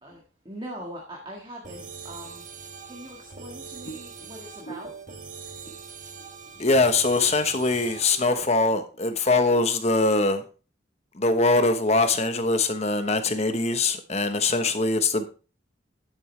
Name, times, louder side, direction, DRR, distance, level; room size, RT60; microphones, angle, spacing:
voice 1, 0.0-4.9, right 1 dB, 25° right, -1 dB, 1.7 m, -42 dB
sound 1, 1.6-8.5, right 5 dB, 40° right, 1.3 m, -42 dB
voice 2, 6.6-10.4 11.1-15.2, left 3 dB, 35° left, 8 dB, 1.1 m, -22 dB
10.5 x 8.8 x 3.3 m, 0.35 s
head